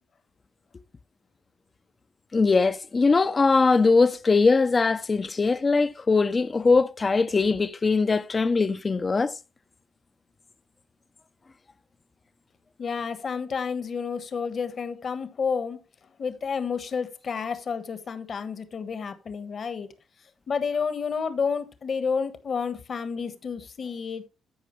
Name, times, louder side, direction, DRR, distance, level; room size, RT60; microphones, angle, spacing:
voice 1, 2.3-9.4, left 4 dB, 30° left, 0.6 m, -21 dB
voice 2, 12.8-15.8 16.2-19.9 20.5-24.2, left 5 dB, 50° left, 1.3 m, -30 dB
14.0 x 5.0 x 3.1 m
cardioid pair, 90°, 0 cm